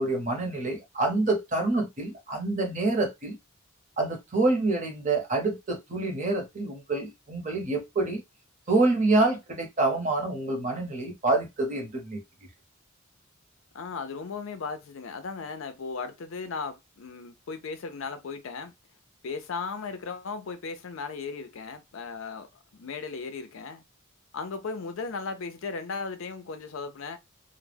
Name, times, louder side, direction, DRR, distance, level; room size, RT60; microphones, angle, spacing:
voice 1, 0.0-3.4 4.0-8.2 8.7-12.2, right 2 dB, 35° right, 0.8 m, -27 dB
voice 2, 13.7-18.7 19.2-23.8 24.3-27.2, left 4 dB, 65° left, 0.4 m, -36 dB
2.2 x 2.0 x 3.3 m
head